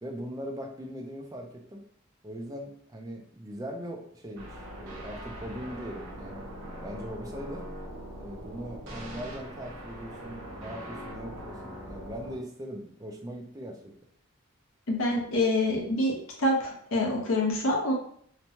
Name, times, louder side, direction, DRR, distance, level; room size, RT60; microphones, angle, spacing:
voice 1, 0.0-1.8 2.2-6.5 6.8-7.6 8.2-13.9, equal, 15° right, 0 dB, 0.4 m, -40 dB
sound 1, 4.4-12.4, right 1 dB, 80° right, 0.8 m, -42 dB
voice 2, 14.9-17.9, left 1 dB, 75° left, -1 dB, 0.7 m, -26 dB
2.9 x 2.2 x 2.7 m, 0.63 s
head